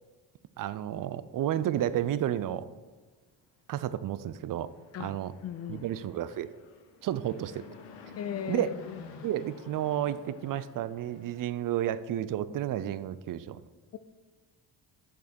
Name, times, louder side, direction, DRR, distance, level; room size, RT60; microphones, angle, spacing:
voice 1, 0.6-2.7 3.7-4.7 5.0-5.3 5.7-6.5 7.0-7.6 8.5-8.8 9.2-13.6, right 11 dB, 50° right, 15 dB, 0.5 m, -31 dB
Fixed-wing aircraft airplane, 4.6-12.0, left 5 dB, 75° left, 0.9 m, -50 dB
voice 2, 5.4-5.8 8.2-9.0 13.9-14.0, left 9 dB, 35° left, 13 dB, 0.4 m, -37 dB
6.7 x 5.1 x 4.3 m, 1.3 s
supercardioid pair, 55°, 45 cm